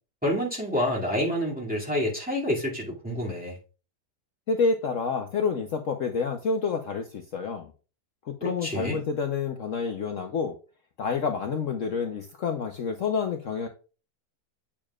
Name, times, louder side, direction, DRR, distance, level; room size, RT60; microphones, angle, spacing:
voice 1, 0.2-3.6 8.4-9.0, left 1 dB, 5° right, 2.2 m, -28 dB
voice 2, 4.5-7.7 8.3-10.5 11.0-13.7, left 5 dB, 55° left, 1.1 m, -28 dB
8.7 x 6.9 x 2.4 m
omnidirectional pair, 1.7 m